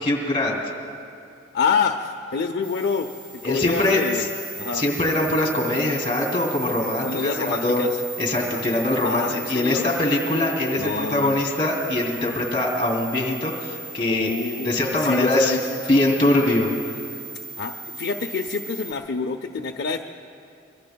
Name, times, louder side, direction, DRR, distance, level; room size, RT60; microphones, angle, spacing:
voice 1, 0.0-0.6 3.4-4.3 4.7-7.8 8.2-14.3 14.6-15.6 15.9-16.7, left 1 dB, 25° left, -1 dB, 2.9 m, -22 dB
voice 2, 1.5-3.1 3.4-4.3 4.6-4.8 7.0-8.0 8.5-8.6 9.0-10.0 10.8-11.4 14.1-14.7 15.0-15.6 17.6-20.0, left 5 dB, 55° left, 3 dB, 0.5 m, -27 dB
sound 1, 2.6-18.9, right 3 dB, 60° right, 2.0 m, -37 dB
25.0 x 23.5 x 2.3 m, 2.5 s
head